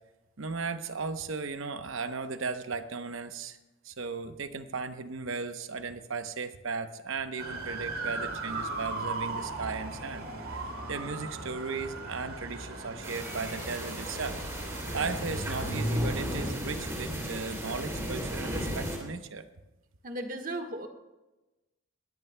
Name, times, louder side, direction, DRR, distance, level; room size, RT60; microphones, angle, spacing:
voice 1, 0.4-3.6 3.8-14.4 14.9-19.5, right 4 dB, 65° right, 9 dB, 0.8 m, -36 dB
sound 1, 7.4-16.5, right 2 dB, 80° right, 2.5 m, -36 dB
sound 2, 13.0-19.0, equal, 15° right, 2.6 m, -36 dB
voice 2, 20.0-20.9, right 1 dB, 40° right, 5 dB, 1.3 m, -35 dB
20.0 x 14.5 x 2.2 m, 1.0 s
head